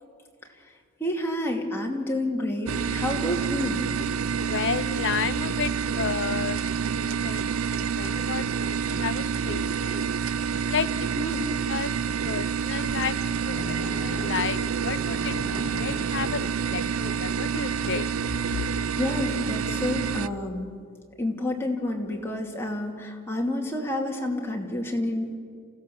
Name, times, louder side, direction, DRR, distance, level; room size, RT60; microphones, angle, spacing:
voice 1, 1.0-3.8 11.2-11.4 19.0-20.7 21.2-25.3, left 1 dB, 10° left, 0 dB, 2.4 m, -29 dB
sound 1, 2.7-20.3, right 6 dB, 75° right, 0.5 m, -28 dB
voice 2, 4.4-7.4 7.7-10.2 10.7-11.1 11.7-11.9 12.2-18.1 18.5-18.7, left 6 dB, 60° left, 14 dB, 0.7 m, -32 dB
sound 2, 13.5-17.5, left 2 dB, 80° left, 1.6 m, -39 dB
28.0 x 15.5 x 7.1 m, 2.1 s
head